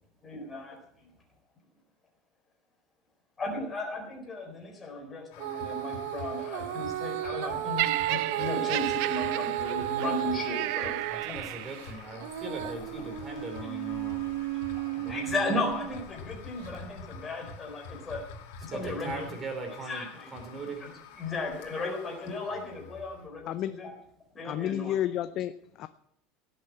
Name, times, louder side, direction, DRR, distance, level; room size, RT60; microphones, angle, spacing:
voice 1, 0.2-0.8 3.4-11.4 12.9-13.0 14.0-18.2 18.6-19.3 19.8-20.4 20.8-23.9 24.3-24.9, left 2 dB, 15° left, 1 dB, 4.2 m, -36 dB
sound 1, 5.3-23.3, left 5 dB, 70° left, 2.7 m, -47 dB
Female singing, 5.4-11.3 11.7-16.1 16.7-16.8, right 14 dB, 75° right, 1.3 m, -33 dB
Laughter, 7.8-12.0 12.8-13.0, right 19 dB, 60° right, 0.5 m, -34 dB
voice 2, 11.1-14.4 15.0-15.3 18.7-20.0 20.3-20.9, right 3 dB, 20° right, 4 dB, 3.7 m, -39 dB
voice 3, 23.5-23.8 24.4-25.9, left 12 dB, 40° left, 12 dB, 0.6 m, -31 dB
17.0 x 7.9 x 8.8 m, 0.74 s
cardioid pair, 165°, 0 cm